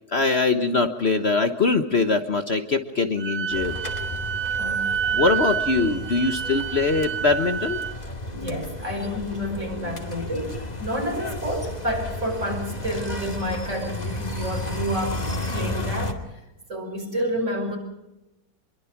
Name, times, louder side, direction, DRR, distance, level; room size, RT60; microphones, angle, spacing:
voice 1, 0.1-3.7 5.1-7.8, left 3 dB, 45° left, 7 dB, 1.4 m, -22 dB
Wind instrument woodwind instrument, 3.2-7.9, right 8 dB, 70° right, 1.8 m, -28 dB
sound 1, 3.5-16.1, left 1 dB, 25° left, 2.5 m, -33 dB
voice 2, 4.6-5.3 8.3-15.2 15.5-16.2 16.7-17.8, equal, 45° right, 3 dB, 6.1 m, -29 dB
26.0 x 22.5 x 6.0 m, 0.93 s
omnidirectional pair, 1.7 m